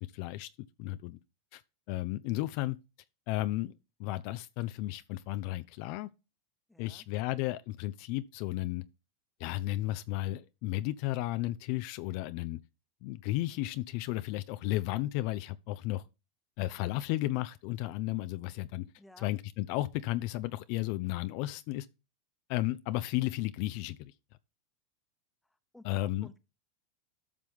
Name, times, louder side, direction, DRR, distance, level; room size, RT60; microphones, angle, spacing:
voice 1, 0.1-0.5 0.8-1.2 1.5-1.6 1.9-2.8 3.3-3.7 4.0-6.1 6.8-8.8 9.4-12.6 13.0-16.0 16.6-18.8 19.2-21.9 22.5-24.1 25.8-26.3, left 17 dB, 55° left, 0.5 m, -33 dB
voice 2, 6.7-7.1 19.0-19.4 25.7-26.4, left 1 dB, 5° left, 1.1 m, -55 dB
12.5 x 6.1 x 3.5 m
hypercardioid pair, 115°, 0 cm